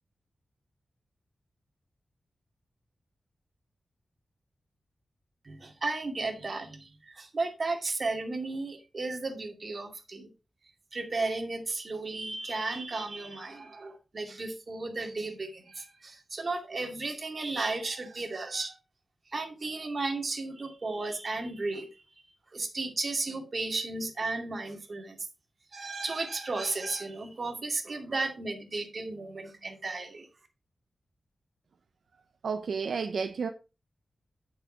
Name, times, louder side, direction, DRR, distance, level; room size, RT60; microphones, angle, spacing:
voice 1, 5.4-10.3 10.9-18.7 19.3-22.0 22.5-25.2 25.7-30.3, right 3 dB, 40° right, 2.5 m, -34 dB
voice 2, 32.4-33.5, right 5 dB, 80° right, 0.9 m, -31 dB
9.4 x 6.7 x 4.7 m
wide cardioid pair, 160°, 0 cm